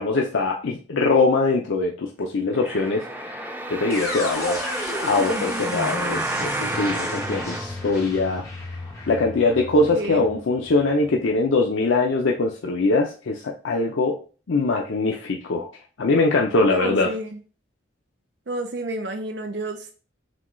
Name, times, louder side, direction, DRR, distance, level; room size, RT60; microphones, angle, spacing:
voice 1, 0.0-4.7 5.0-8.5 9.1-14.2 14.5-15.7 16.0-17.1, left 3 dB, 90° left, 1 dB, 0.5 m, -22 dB
sound 1, 2.5-8.5 9.1-9.2, right 1 dB, 10° right, 0.3 m, -30 dB
sound 2, 3.9-11.8, left 2 dB, 15° left, 1.2 m, -34 dB
voice 2, 9.8-10.4 16.6-17.4 18.5-19.9, right 2 dB, 65° right, 5 dB, 0.6 m, -30 dB
6.0 x 2.3 x 3.1 m, 0.37 s
head